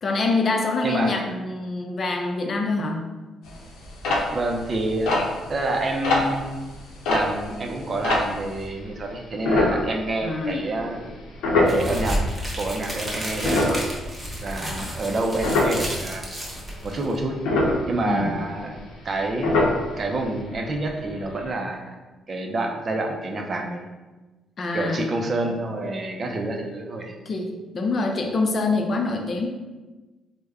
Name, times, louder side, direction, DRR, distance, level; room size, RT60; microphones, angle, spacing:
voice 1, 0.0-3.1 10.2-10.6 10.9-11.1 18.1-18.4 24.6-25.1 27.3-29.5, left 3 dB, 45° left, 3 dB, 0.4 m, -25 dB
voice 2, 0.8-1.3 4.3-5.2 5.5-6.6 7.1-11.0 11.6-12.2 12.6-13.8 14.4-16.3 16.8-17.4 17.9-18.8 19.0-19.6 20.0-21.9 22.3-23.9 24.7-27.2, right 2 dB, 40° right, 2 dB, 0.5 m, -28 dB
sound 1, 3.5-8.7 9.4-10.4 10.7-10.9 11.4-12.7 13.1-16.0 16.3-16.8 17.2-19.2 19.4-20.2 20.6-20.7 20.9-21.1 21.5-21.6, left 2 dB, 90° left, 0.6 m, -24 dB
sound 2, 11.7-17.2, equal, 15° right, 0.9 m, -31 dB
3.3 x 2.1 x 3.4 m, 1.2 s
cardioid pair, 90°, 0 cm